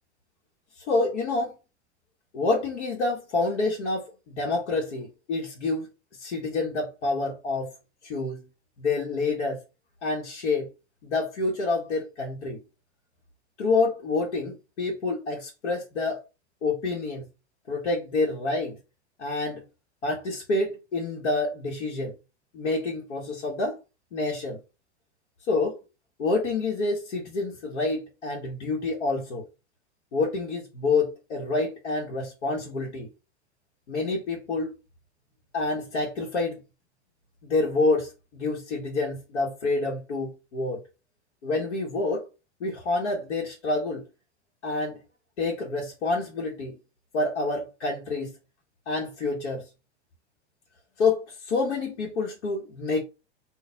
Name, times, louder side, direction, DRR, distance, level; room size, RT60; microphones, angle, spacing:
voice 1, 0.8-1.6 2.3-5.9 6.2-7.7 8.0-8.4 8.8-9.6 10.0-10.7 11.0-12.6 13.6-16.2 16.6-17.3 17.7-18.8 19.2-19.6 20.0-22.1 22.5-23.8 24.1-24.6 25.5-25.8 26.2-29.5 30.1-33.1 33.9-34.8 35.5-36.6 37.4-40.8 41.4-42.3 42.6-44.1 44.6-45.0 45.4-46.8 47.1-48.3 48.9-49.7 51.0-53.0, left 3 dB, 70° left, 1.4 m, -28 dB
4.0 x 2.5 x 3.9 m
hypercardioid pair, 105°, 34 cm